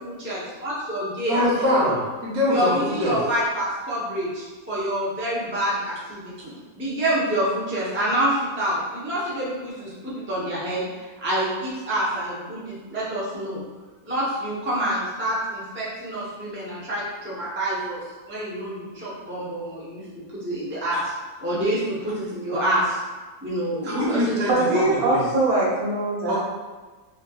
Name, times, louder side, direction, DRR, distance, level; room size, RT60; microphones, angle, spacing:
voice 1, 0.0-2.0 2.5-10.8 11.2-13.6 14.0-18.0 18.3-20.0 20.3-21.1 21.4-23.0 23.4-24.4, right 1 dB, 15° right, -8 dB, 0.4 m, -27 dB
voice 2, 1.3-3.2 23.8-24.8 25.1-25.2 26.3-26.4, left 1 dB, 90° right, -6 dB, 1.6 m, -23 dB
voice 3, 24.5-26.4, right 2 dB, 45° right, -7 dB, 1.2 m, -22 dB
3.5 x 3.1 x 2.3 m, 1.3 s
omnidirectional pair, 1.5 m